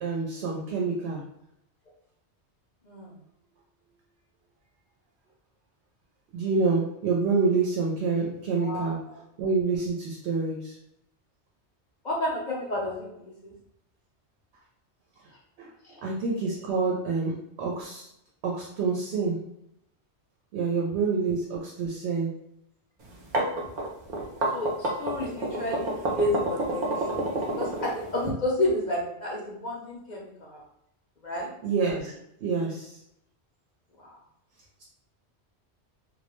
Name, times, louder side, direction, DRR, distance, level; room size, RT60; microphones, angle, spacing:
voice 1, 0.0-1.2 6.3-9.0 9.4-10.8 15.6-15.7 16.0-17.3 17.6-18.1 18.4-19.4 20.5-22.3 31.6-32.1 32.4-33.0, right 4 dB, 75° right, -2 dB, 0.8 m, -27 dB
voice 2, 8.6-9.2 12.0-13.5 15.8-16.0 24.5-30.6 31.2-31.5 34.0-34.1, left 1 dB, 50° left, -4 dB, 0.6 m, -31 dB
sound 1, 23.1-28.3, right 2 dB, 55° right, 0.6 m, -29 dB
2.3 x 2.1 x 2.9 m, 0.76 s
omnidirectional pair, 1.1 m